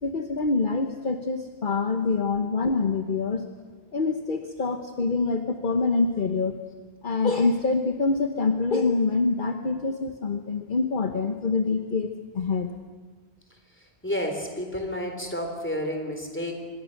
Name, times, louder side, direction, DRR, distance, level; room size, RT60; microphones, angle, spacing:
voice 1, 0.0-3.4 3.9-6.6 7.0-12.7, left 4 dB, 50° left, 6 dB, 1.2 m, -25 dB
voice 2, 14.0-16.5, equal, 10° left, 3 dB, 3.6 m, -30 dB
25.0 x 20.5 x 6.6 m, 1.4 s
omnidirectional pair, 1.1 m